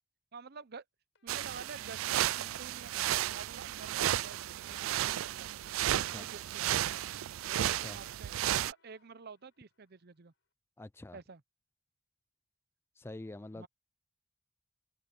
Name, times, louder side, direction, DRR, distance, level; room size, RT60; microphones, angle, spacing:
voice 1, 0.3-0.8 1.2-5.5 5.9-6.7 7.4-10.3 11.1-11.4 13.5-13.7, right 5 dB, 50° right, 0.7 m, -50 dB
sound 1, 1.1-10.2, left 5 dB, 65° left, 5.4 m, -68 dB
sound 2, 1.3-8.7, right 12 dB, 75° right, 0.3 m, -33 dB
voice 2, 5.9-6.3 7.6-8.0 10.8-11.2 13.0-13.7, left 2 dB, 10° left, 0.4 m, -46 dB
head